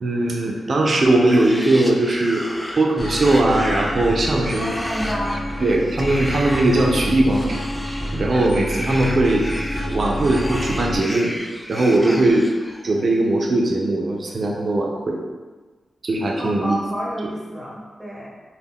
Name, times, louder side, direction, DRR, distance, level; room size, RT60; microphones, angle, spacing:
voice 1, 0.0-2.4 2.8-4.7 5.6-9.4 9.9-11.3 11.7-12.4 12.8-15.2 16.0-16.8, right 2 dB, 60° right, 0 dB, 0.5 m, -19 dB
sound 1, 1.0-13.0, equal, 5° left, 0.3 m, -33 dB
sound 2, 3.0-11.0, equal, 40° left, 0.8 m, -28 dB
voice 2, 4.6-5.4 12.0-12.3 16.4-18.3, equal, 10° right, -4 dB, 1.0 m, -29 dB
2.2 x 2.2 x 3.5 m, 1.3 s
cardioid pair, 50°, 0 cm